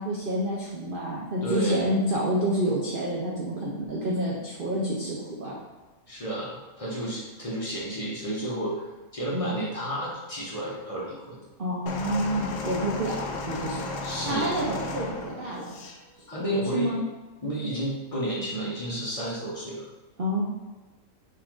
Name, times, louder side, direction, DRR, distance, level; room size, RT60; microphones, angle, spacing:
voice 1, 0.0-5.6 9.3-9.5 11.6-13.8 14.3-15.8 16.4-17.0 20.2-20.4, equal, 80° right, -4 dB, 0.4 m, -28 dB
voice 2, 1.4-1.9 6.1-8.8 9.1-11.4 14.0-14.6 16.3-16.9 17.4-19.9, right 1 dB, 35° left, -5 dB, 0.6 m, -31 dB
sound 1, 11.9-16.0 16.9-17.0, left 3 dB, 75° left, 1.2 m, -34 dB
5.4 x 2.6 x 3.6 m, 1.2 s
omnidirectional pair, 1.8 m